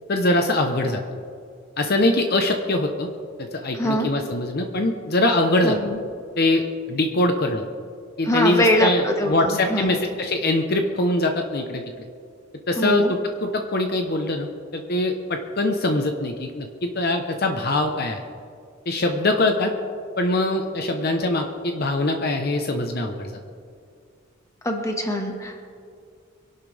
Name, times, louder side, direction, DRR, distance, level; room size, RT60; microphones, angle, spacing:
voice 1, 0.1-1.0 1.8-3.1 3.4-5.8 6.4-7.6 8.2-12.0 12.7-18.2 18.9-19.7 20.2-23.3, left 2 dB, 50° left, 4 dB, 1.0 m, -23 dB
voice 2, 3.7-4.1 5.6-6.0 8.3-10.0 12.8-13.1 24.6-25.7, equal, 15° left, 2 dB, 1.7 m, -23 dB
24.5 x 11.5 x 3.5 m, 2.3 s
head